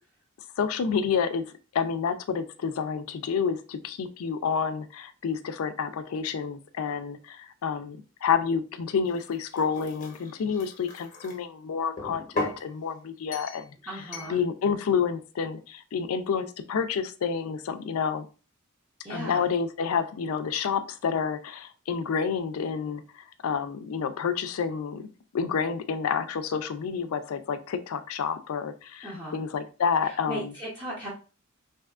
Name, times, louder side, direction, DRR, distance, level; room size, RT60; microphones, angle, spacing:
voice 1, 0.6-1.4 1.7-13.7 14.3-18.3 19.1-25.1 25.3-30.5, left 6 dB, 85° left, 11 dB, 0.4 m, -29 dB
sound 1, 9.1-11.4 12.0-12.6 13.3-13.7 14.1-14.4, left 2 dB, 40° left, 0.8 m, -36 dB
voice 2, 13.8-14.4 19.0-19.5 29.0-29.4 30.0-31.1, right 1 dB, 20° right, -8 dB, 0.9 m, -37 dB
3.4 x 2.7 x 2.3 m, 0.35 s
head